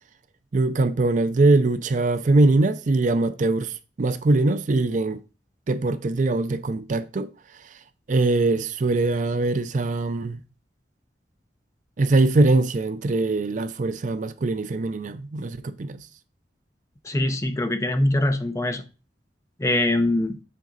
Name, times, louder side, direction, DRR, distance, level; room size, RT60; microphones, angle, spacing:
voice 1, 0.5-5.2 5.7-7.3 8.1-10.4 12.0-16.1, right 2 dB, 45° right, 0.4 m, -22 dB
voice 2, 17.0-18.8 19.6-20.4, left 1 dB, 15° left, 0.6 m, -23 dB
7.6 x 3.9 x 3.9 m
head